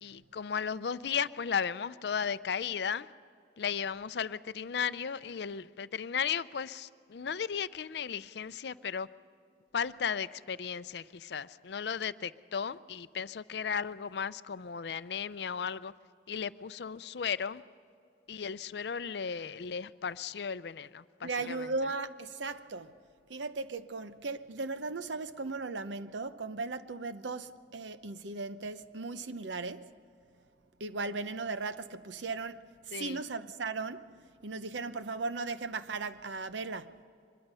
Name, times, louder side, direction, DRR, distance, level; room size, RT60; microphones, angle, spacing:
voice 1, 0.0-3.1 3.6-9.1 9.7-15.9 16.3-17.6 18.3-21.7 32.9-33.2, left 7 dB, 60° left, 0.5 m, -35 dB
voice 2, 21.2-22.9 23.3-29.9 30.8-34.1 34.4-36.9, right 3 dB, 80° right, 0.8 m, -37 dB
23.5 x 21.5 x 5.6 m
head